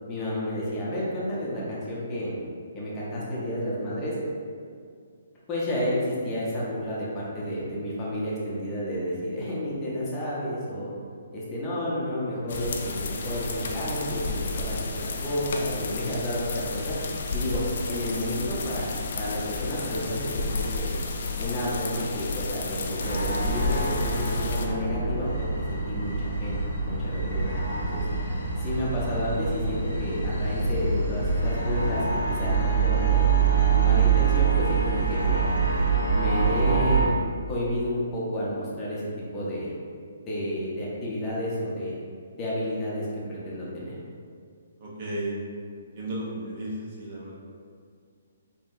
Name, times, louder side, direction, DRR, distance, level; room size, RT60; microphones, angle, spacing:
voice 1, 0.1-2.3 2.7-4.2 5.5-10.9 11.3-17.0 17.3-17.6 17.9-20.9 21.4-28.0 28.6-33.3 33.7-35.5 36.1-37.1 37.5-39.7 40.3-42.0 42.4-43.9, equal, 20° left, -7 dB, 0.7 m, -31 dB
sound 1, 12.5-24.7, left 3 dB, 55° left, 0.3 m, -32 dB
sound 2, 23.0-37.0, right 5 dB, 80° left, 0.9 m, -25 dB
voice 2, 44.8-45.3 45.8-47.3, right 1 dB, 45° right, -5 dB, 0.8 m, -34 dB
3.4 x 2.2 x 2.7 m, 2.2 s
figure-of-eight pair, 135°, 0 cm